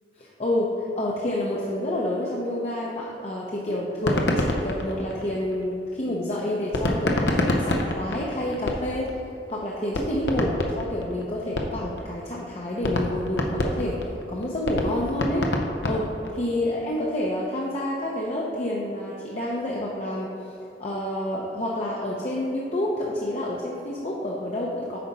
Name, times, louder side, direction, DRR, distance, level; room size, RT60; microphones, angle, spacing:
voice 1, 0.2-9.2 9.5-14.0 14.3-15.5 15.8-20.5 20.8-25.0, left 1 dB, 35° left, -4 dB, 0.7 m, -28 dB
sound 1, 3.9-5.7 6.7-9.2 9.5-9.6 9.9-12.0 12.4-12.5 12.8-16.5, left 1 dB, 75° left, 0.8 m, -26 dB
8.5 x 4.0 x 5.4 m, 2.8 s
head